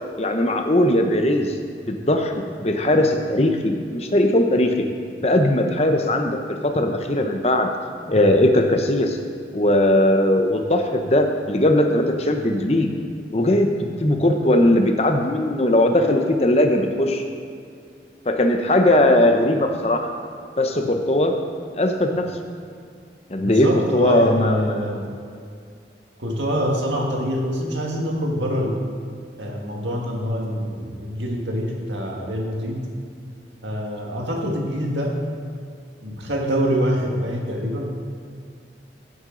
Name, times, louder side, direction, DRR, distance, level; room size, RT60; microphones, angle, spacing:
voice 1, 0.2-1.5 1.9-4.8 5.2-6.4 6.6-7.7 8.1-9.2 9.5-12.9 13.3-17.2 18.3-20.1 20.6-21.4 21.7-22.3 23.3-24.8, left 1 dB, 35° left, 4 dB, 0.9 m, -19 dB
voice 2, 23.4-25.0 26.2-28.9 29.4-32.9 33.6-35.2 36.0-37.9, equal, 90° right, 0 dB, 1.9 m, -25 dB
16.0 x 8.0 x 3.9 m, 2.3 s
head